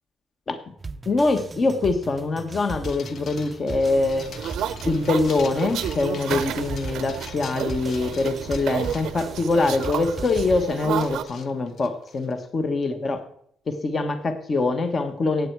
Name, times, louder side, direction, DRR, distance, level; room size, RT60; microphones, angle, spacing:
sound 1, 0.8-10.7, right 3 dB, 20° right, 0.5 m, -38 dB
voice 1, 1.0-4.3 4.8-13.2 13.7-15.5, left 3 dB, 35° left, 7 dB, 1.2 m, -24 dB
sound 2, 2.8-12.4, left 6 dB, 60° left, 1.2 m, -44 dB
sound 3, 3.9-11.2, right 10 dB, 80° right, 0.7 m, -32 dB
17.0 x 8.2 x 4.6 m, 0.67 s
cardioid pair, 125°, 0 cm